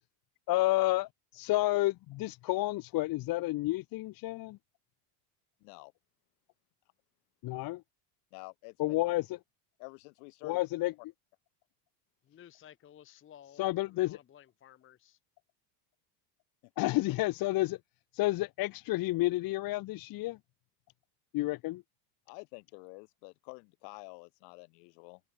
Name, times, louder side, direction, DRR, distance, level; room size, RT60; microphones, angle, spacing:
voice 1, 0.5-4.6 7.4-7.8 8.8-9.4 10.4-10.9 13.6-14.2 16.8-17.8 18.1-20.4 21.3-21.8, left 18 dB, 45° left, 1.0 m, -30 dB
voice 2, 5.6-5.9 8.3-9.0 9.8-10.6 16.6-16.7 22.3-25.2, left 38 dB, 75° left, 6.6 m, -49 dB
voice 3, 12.3-13.6 13.9-15.2, left 10 dB, 25° left, 0.9 m, -55 dB
open air
supercardioid pair, 130°, 48 cm